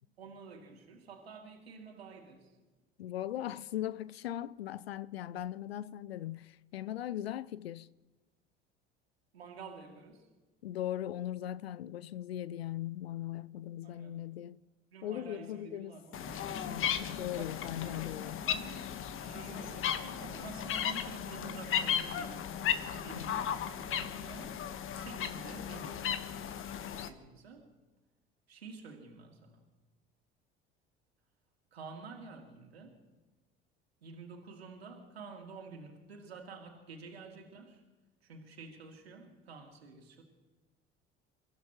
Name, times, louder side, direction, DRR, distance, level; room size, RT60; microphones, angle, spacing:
voice 1, 0.2-2.5 9.3-10.3 13.8-14.2 14.9-16.4 17.4-18.1 18.5-18.8 19.1-24.5 24.9-26.2 26.8-27.7 28.5-29.6 31.7-33.0 34.0-37.8 38.2-40.2, right 4 dB, 80° right, 2.7 m, -50 dB
voice 2, 3.0-7.9 10.6-14.6 15.0-16.0 16.7-18.5 23.1-23.3, left 12 dB, 75° left, 0.5 m, -39 dB
sound 1, 16.1-27.1, left 9 dB, 40° left, 1.4 m, -36 dB
29.5 x 16.0 x 3.1 m
figure-of-eight pair, 60°, 31 cm